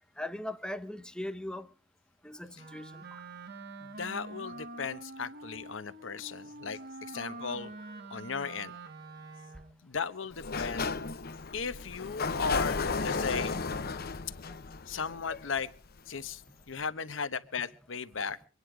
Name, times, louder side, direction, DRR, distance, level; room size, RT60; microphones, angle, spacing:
voice 1, 0.2-1.7 2.2-3.0 7.4-7.6, left 1 dB, 5° left, 0.9 m, -39 dB
Wind instrument woodwind instrument, 2.5-9.8, right 2 dB, 55° right, 1.4 m, -46 dB
voice 2, 3.8-7.7 8.1-8.7 9.8-10.9 11.5-13.6 14.9-15.7 16.1-18.4, left 5 dB, 85° left, 1.0 m, -36 dB
Sliding door, 10.3-16.0, left 4 dB, 50° left, 0.8 m, -34 dB
24.5 x 9.9 x 4.9 m
head